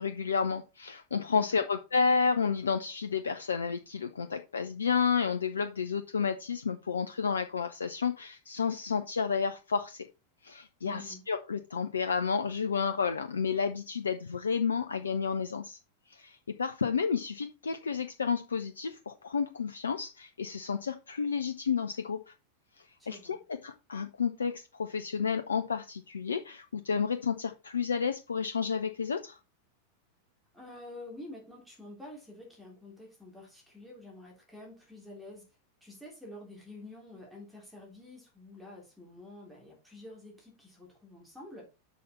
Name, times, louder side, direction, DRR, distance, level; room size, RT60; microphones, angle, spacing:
voice 1, 0.0-10.1 10.4-15.8 16.1-22.3 23.1-23.4 23.6-29.4, left 5 dB, 70° left, 9 dB, 0.6 m, -31 dB
voice 2, 1.3-1.7 10.8-11.2 23.0-23.4 30.5-35.5 35.8-41.7, left 1 dB, ahead, -3 dB, 3.4 m, -48 dB
6.7 x 6.3 x 4.3 m, 0.29 s
figure-of-eight pair, 90°, 0 cm